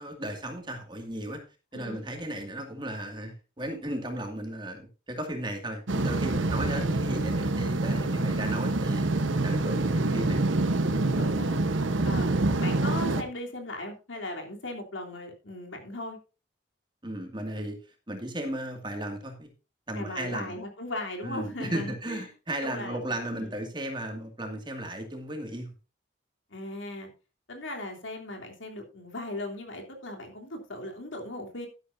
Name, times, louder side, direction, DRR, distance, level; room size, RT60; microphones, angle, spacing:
voice 1, 0.0-1.4 1.7-9.1 9.4-10.5 17.0-17.8 18.1-19.5 19.9-20.6 21.2-25.7, right 1 dB, 25° right, 4 dB, 2.2 m, -35 dB
voice 2, 1.7-2.1 6.5-6.9 10.7-11.6 12.0-16.2 19.9-22.2 22.6-23.5 26.5-27.1 27.5-31.7, left 1 dB, 85° left, 2 dB, 3.2 m, -38 dB
sound 1, 5.9-13.2, right 2 dB, 85° right, 1.1 m, -26 dB
12.0 x 11.5 x 2.7 m, 0.31 s
head